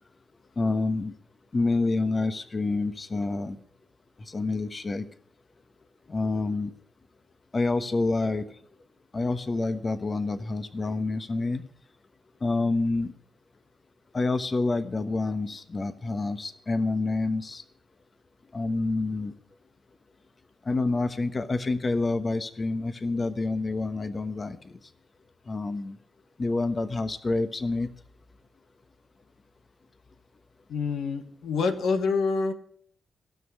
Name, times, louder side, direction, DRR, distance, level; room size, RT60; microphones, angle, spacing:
voice 1, 0.6-1.1 1.5-3.6 4.3-5.0 6.1-6.7 7.5-8.5 9.1-11.6 12.4-13.1 14.1-17.6 18.5-19.3 20.7-24.6 25.5-25.9 26.4-27.9, left 3 dB, 40° left, 10 dB, 1.1 m, -27 dB
voice 2, 30.7-32.5, left 4 dB, 80° left, 8 dB, 1.3 m, -26 dB
16.5 x 6.3 x 9.9 m, 0.63 s
cardioid pair, 65°, 0 cm